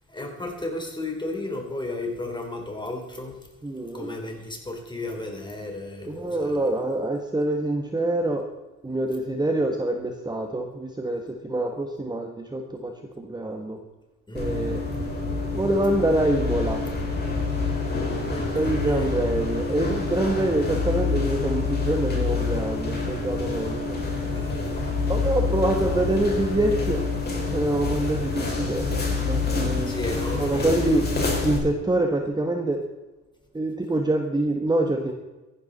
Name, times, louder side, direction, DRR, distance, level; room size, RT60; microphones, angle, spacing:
voice 1, 0.1-3.4 3.9-6.7 14.3-14.6 18.3-19.2 24.2-24.9 29.9-31.0, left 2 dB, 15° left, 3 dB, 3.5 m, -34 dB
voice 2, 3.6-4.2 6.1-8.4 8.8-13.8 14.3-14.8 15.5-16.8 18.5-24.0 25.1-27.0 27.5-29.9 30.4-31.0 31.4-32.8 33.5-35.1, right 1 dB, 15° right, 4 dB, 1.3 m, -25 dB
sound 1, 14.3-31.6, left 4 dB, 35° left, 4.7 m, -27 dB
14.5 x 11.5 x 4.1 m, 1.1 s
cardioid pair, 90°, 30 cm